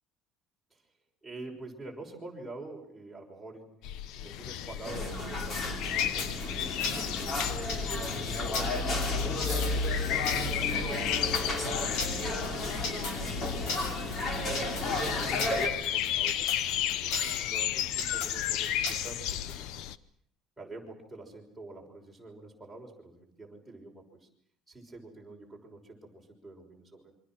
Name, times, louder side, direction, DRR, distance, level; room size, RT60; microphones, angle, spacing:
voice 1, 1.2-3.7 4.2-7.5 8.0-11.9 12.2-15.1 15.7-16.6 17.0-19.9 20.6-24.3 24.7-27.1, right 2 dB, 5° right, -2 dB, 6.1 m, -47 dB
sound 1, 3.8-20.0, left 11 dB, 65° left, 1.0 m, -34 dB
sound 2, 4.8-15.7, left 2 dB, 30° left, 3.7 m, -32 dB
sound 3, 6.0-19.6, left 4 dB, 80° left, 7.4 m, -37 dB
28.0 x 25.0 x 6.2 m, 0.62 s
cardioid pair, 165°, 0 cm